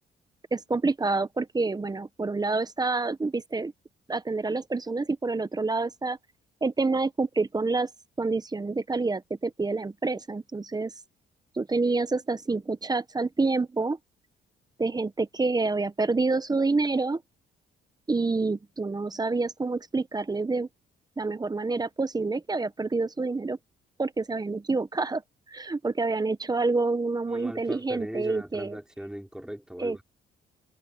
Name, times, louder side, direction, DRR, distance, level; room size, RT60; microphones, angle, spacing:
voice 1, 0.5-3.7 4.1-6.2 6.6-7.9 8.2-10.9 11.6-14.0 14.8-17.2 18.1-20.7 21.2-23.6 24.0-25.2 25.5-28.8 29.8-30.0, right 3 dB, 20° right, 1.0 m, -27 dB
voice 2, 27.3-30.0, equal, 5° right, 4.2 m, -38 dB
cardioid pair, 90°, 20 cm